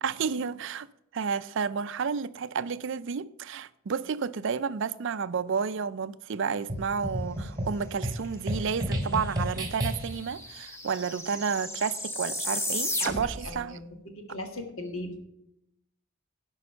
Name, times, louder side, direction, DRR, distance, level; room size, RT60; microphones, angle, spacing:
voice 1, 0.0-0.9 1.1-13.8, right 6 dB, 60° right, 0.4 m, -31 dB
sound 1, 6.7-10.3, equal, 20° right, 1.5 m, -32 dB
sound 2, 9.0-9.1 9.3-13.6, left 1 dB, 10° left, 1.0 m, -34 dB
voice 2, 13.4-15.2, left 1 dB, 70° left, 1.8 m, -38 dB
11.0 x 5.4 x 6.7 m
head